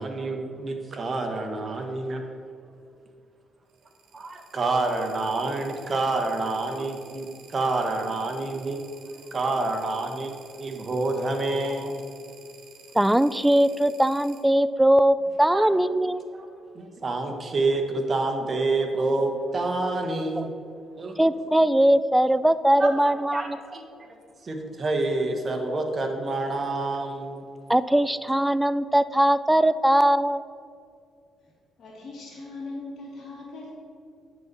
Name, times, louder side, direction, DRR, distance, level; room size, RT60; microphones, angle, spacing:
voice 1, 0.0-2.2 4.1-8.8 9.3-12.0 15.5-15.7 16.3-16.5 16.7-20.5 21.0-21.2 22.8-24.2 24.4-27.4, right 2 dB, 35° right, 4 dB, 1.3 m, -28 dB
sound 1, 3.7-14.4, right 6 dB, 80° right, 1.3 m, -51 dB
voice 2, 12.9-16.2 20.4-20.5 21.2-23.6 27.7-30.4, right 1 dB, 5° right, 15 dB, 0.3 m, -20 dB
voice 3, 31.8-33.8, left 2 dB, 65° left, -8 dB, 2.2 m, -39 dB
9.3 x 4.1 x 7.0 m, 2.3 s
cardioid pair, 90°, 0 cm